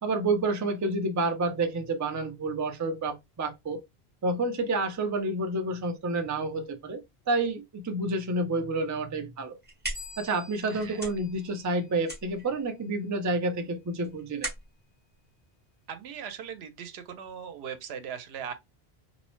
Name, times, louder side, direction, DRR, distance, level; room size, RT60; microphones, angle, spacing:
voice 1, 0.0-3.8 4.2-9.6 10.2-14.5, right 2 dB, 30° right, 0.3 m, -29 dB
sound 1, 9.4-16.3, right 1 dB, 10° right, 0.9 m, -41 dB
sound 2, 9.9-12.4, left 3 dB, 10° left, 0.6 m, -50 dB
voice 2, 10.7-11.1 15.9-18.5, right 8 dB, 90° right, 0.8 m, -39 dB
2.7 x 2.0 x 3.0 m
omnidirectional pair, 1.0 m